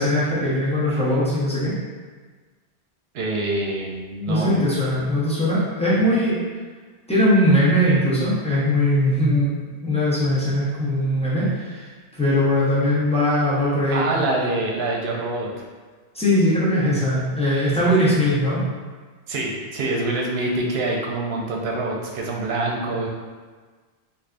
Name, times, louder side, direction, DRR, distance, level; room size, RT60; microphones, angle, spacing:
voice 1, 0.0-1.7 4.3-6.4 7.1-9.6 9.8-11.9 12.2-14.0 16.1-18.6, left 1 dB, 5° left, -9 dB, 0.6 m, -20 dB
voice 2, 3.1-4.6 13.9-15.6 17.8-18.1 19.3-23.1, right 2 dB, 70° right, -2 dB, 0.8 m, -26 dB
3.3 x 2.5 x 2.4 m, 1.4 s
omnidirectional pair, 1.1 m